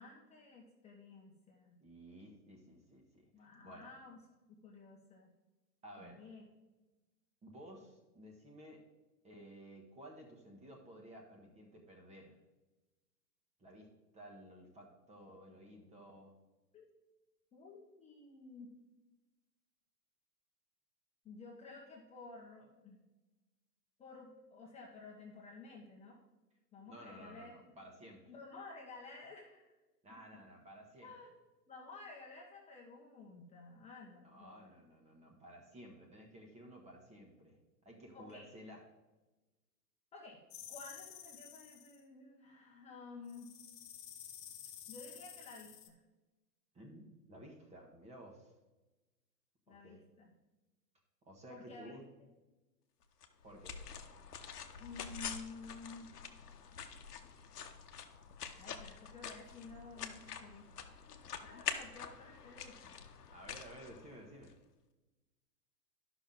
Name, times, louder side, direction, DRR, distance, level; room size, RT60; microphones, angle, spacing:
voice 1, 0.0-1.8 3.3-4.2 4.5-5.3 6.0-6.4 16.7-16.9 17.5-18.7 21.2-23.0 24.0-26.2 26.7-27.5 28.3-29.7 31.0-31.3 31.7-34.7 38.1-38.5 40.1-40.4 40.7-43.5 44.9-46.0 49.7-50.3 51.5-52.0 54.8-56.1 58.6-60.6 61.1-62.9, left 3 dB, 15° left, -2 dB, 1.1 m, -53 dB
voice 2, 1.8-3.9 5.8-6.3 7.4-8.8 9.2-12.4 13.6-16.3 26.9-28.2 30.0-31.1 34.1-37.6 37.8-38.8 46.7-48.5 49.7-50.0 51.2-52.0 53.4-53.8 63.3-64.6, equal, 15° right, 0 dB, 1.3 m, -54 dB
sound 1, 40.5-42.0 43.3-45.9, left 9 dB, 40° left, 1.1 m, -52 dB
sound 2, 53.2-64.5, left 7 dB, 70° left, 1.0 m, -46 dB
11.5 x 6.0 x 3.9 m, 1.1 s
figure-of-eight pair, 115°, 48 cm